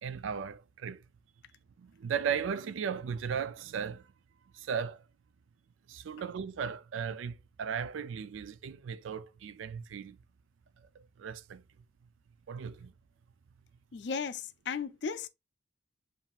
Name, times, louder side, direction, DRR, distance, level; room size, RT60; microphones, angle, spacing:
voice 1, 0.0-1.0 1.8-4.0 4.6-5.0 5.9-10.2 11.2-11.6 12.5-12.9, right 7 dB, 90° right, 0.4 m, -36 dB
voice 2, 13.9-15.3, left 5 dB, 60° left, 0.4 m, -35 dB
7.2 x 2.6 x 2.4 m
head